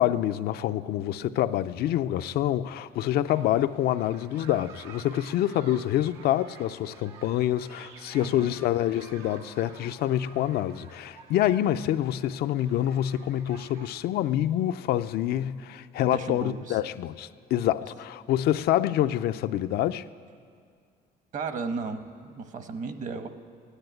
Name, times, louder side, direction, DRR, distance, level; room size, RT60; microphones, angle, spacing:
voice 1, 0.0-20.0, left 12 dB, 70° left, 11 dB, 0.5 m, -26 dB
sound 1, 3.3-13.9, right 5 dB, 90° right, 1.4 m, -50 dB
voice 2, 16.1-16.8 21.3-23.3, right 4 dB, 50° right, 9 dB, 1.1 m, -34 dB
15.5 x 10.0 x 9.2 m, 2.2 s
cardioid pair, 110°, 17 cm